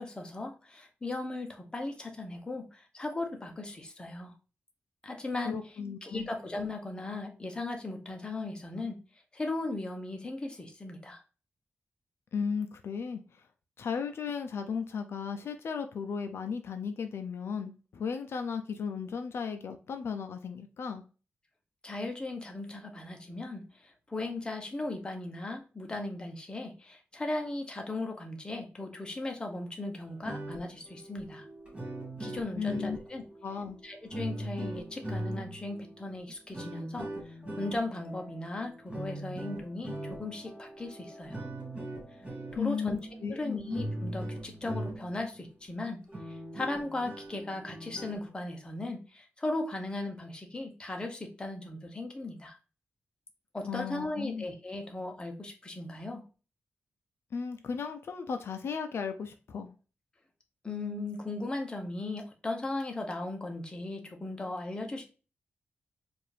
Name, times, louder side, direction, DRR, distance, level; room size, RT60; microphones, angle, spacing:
voice 1, 0.0-4.3 5.0-5.7 6.0-9.0 9.3-11.2 21.8-31.5 32.2-33.3 33.8-37.1 37.6-41.4 42.5-43.0 43.3-46.0 46.3-52.6 53.5-56.2 60.6-65.1, left 2 dB, 20° left, 3 dB, 0.8 m, -37 dB
voice 2, 5.5-6.3 12.3-13.2 13.8-21.0 32.6-33.0 33.4-33.8 42.6-43.6 53.6-54.4 57.3-59.7, left 6 dB, 70° left, 7 dB, 0.4 m, -35 dB
sound 1, 30.1-45.3 45.7-45.8 46.1-48.3, right 1 dB, 25° right, 2.3 m, -41 dB
4.6 x 2.5 x 3.2 m, 0.35 s
wide cardioid pair, 130°, 4 cm